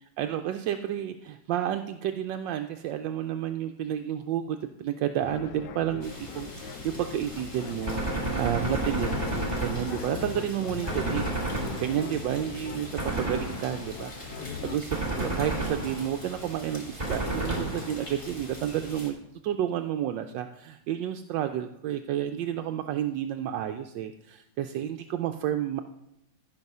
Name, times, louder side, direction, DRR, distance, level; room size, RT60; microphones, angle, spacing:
voice 1, 0.2-9.1 9.6-11.2 11.5-19.2 19.4-25.8, right 11 dB, 80° right, 7 dB, 1.2 m, -31 dB
sound 1, 5.2-14.8, left 9 dB, 75° left, 1.2 m, -40 dB
sound 2, 6.0-19.1, right 1 dB, 15° left, 2.1 m, -43 dB
Gunshot gunfire, 7.9-10.4 10.9-12.3 13.0-14.0 14.9-16.3 17.0-18.2, right 2 dB, 20° right, 2.3 m, -31 dB
15.0 x 5.5 x 5.4 m, 0.80 s
omnidirectional pair, 2.0 m